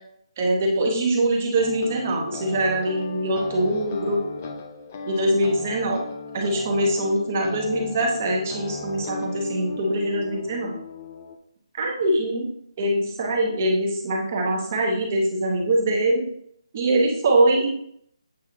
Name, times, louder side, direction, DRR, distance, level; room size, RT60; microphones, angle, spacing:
voice 1, 0.4-4.2 5.1-6.0 6.3-10.7 11.8-12.4 12.8-16.2 16.7-17.7, right 1 dB, 20° right, 0 dB, 1.0 m, -23 dB
sound 1, 1.6-11.4, left 4 dB, 20° left, 0.4 m, -37 dB
7.7 x 4.7 x 2.8 m, 0.69 s
hypercardioid pair, 175°, 3 cm